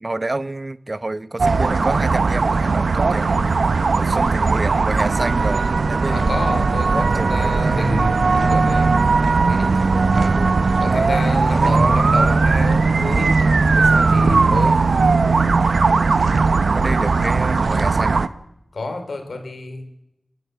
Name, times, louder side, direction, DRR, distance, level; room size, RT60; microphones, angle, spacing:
voice 1, 0.0-3.4 3.9-6.3 6.9-8.0 8.4-8.7 10.1-10.6 11.5-12.1 14.6-14.7 16.6-18.2, right 2 dB, 40° right, 0.8 m, -29 dB
sound 1, 1.4-18.3, right 4 dB, 90° right, 0.7 m, -18 dB
voice 2, 6.1-9.0 9.4-13.5 13.7-14.8 15.2-15.6 18.7-19.9, left 2 dB, 90° left, 3.0 m, -29 dB
27.5 x 11.5 x 9.2 m
wide cardioid pair, 50°, 0 cm